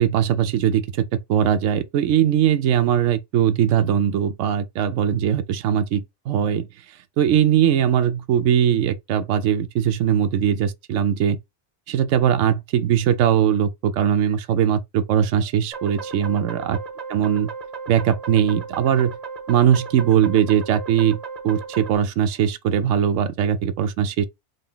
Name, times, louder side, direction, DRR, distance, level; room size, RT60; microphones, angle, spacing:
voice 1, 0.0-6.7 7.2-11.4 11.9-16.8 17.1-17.5 17.9-19.2 19.5-21.2 21.4-24.2, right 9 dB, 70° right, 0.9 m, -20 dB
sound 1, 15.7-22.0, right 5 dB, 40° right, 0.6 m, -35 dB
3.9 x 2.3 x 3.6 m
omnidirectional pair, 1.5 m